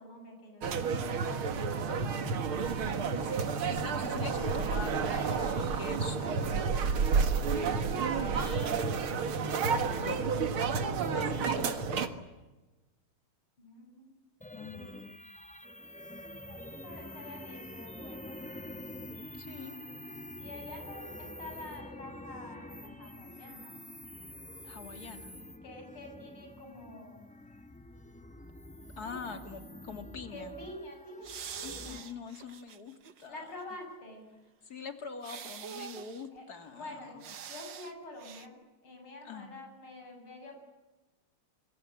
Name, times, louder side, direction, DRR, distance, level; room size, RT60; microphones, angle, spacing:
voice 1, 0.0-1.7 13.6-14.1 16.5-16.6 16.8-18.4 20.4-23.8 25.6-27.2 29.0-29.4 30.3-32.1 33.3-34.3 36.3-36.4 36.7-37.2 37.5-40.5, left 1 dB, 80° left, 3 dB, 8.7 m, -47 dB
sound 1, 0.6-12.1, right 5 dB, 80° right, 2.5 m, -30 dB
voice 2, 3.6-7.1 7.5-8.8 9.9-10.2 11.1-12.2 14.5-15.2 19.4-19.8 24.6-25.4 29.0-30.5 31.6-33.6 34.6-37.3 39.2-39.5, left 5 dB, 45° left, 7 dB, 2.9 m, -44 dB
sound 2, 14.4-32.0, left 1 dB, 5° left, 0.6 m, -47 dB
sound 3, 31.2-33.3 33.6-33.7 35.2-36.3 37.2-37.9 38.2-38.5, right 8 dB, 60° right, 1.9 m, -44 dB
26.5 x 24.0 x 8.8 m, 1.1 s
omnidirectional pair, 2.3 m